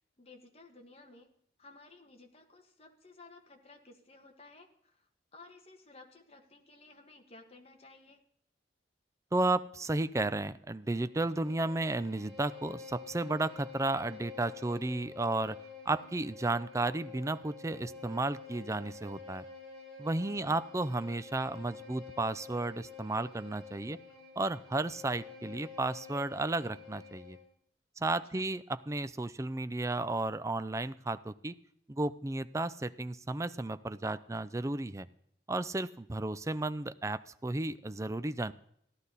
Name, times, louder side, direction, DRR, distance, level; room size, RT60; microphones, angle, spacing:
voice 1, 0.2-1.3 1.6-8.2 20.3-20.6 28.1-28.5, left 3 dB, 35° left, 3 dB, 1.6 m, -56 dB
voice 2, 9.3-15.6 15.9-19.4 20.0-24.0 24.4-27.4 28.0-31.5 31.9-35.1 35.5-38.5, right 2 dB, 15° right, 13 dB, 0.4 m, -33 dB
Bowed string instrument, 10.9-27.5, left 5 dB, 5° left, 5.7 m, -49 dB
15.0 x 11.5 x 4.1 m, 0.69 s
head